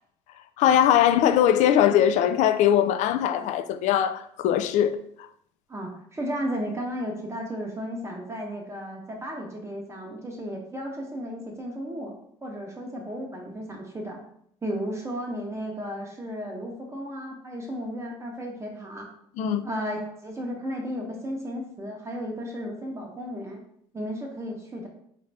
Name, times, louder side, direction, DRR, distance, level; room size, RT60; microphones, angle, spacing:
voice 1, 0.6-5.3 19.4-19.6, left 10 dB, 60° left, 0.4 m, -21 dB
voice 2, 5.7-12.1 12.4-14.2 14.6-19.1 19.6-23.6 23.9-24.9, equal, 20° right, 0.8 m, -34 dB
4.1 x 2.6 x 3.3 m
supercardioid pair, 85°, 14 cm